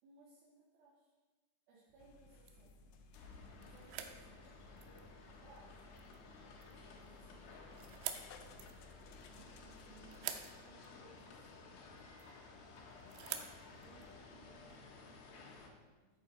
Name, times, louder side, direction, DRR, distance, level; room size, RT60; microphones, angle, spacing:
voice 1, 0.0-1.1 1.7-3.0 3.6-6.0 6.6-8.7 9.3-12.5 13.6-16.1, right 3 dB, 65° right, -6 dB, 3.7 m, -65 dB
sound 1, 1.9-14.8, right 10 dB, 90° right, 2.9 m, -51 dB
sound 2, 2.0-10.2, left 4 dB, 90° left, 2.0 m, -60 dB
sound 3, 3.1-15.7, left 4 dB, 65° left, 3.0 m, -56 dB
14.5 x 8.2 x 4.1 m, 1.2 s
omnidirectional pair, 5.0 m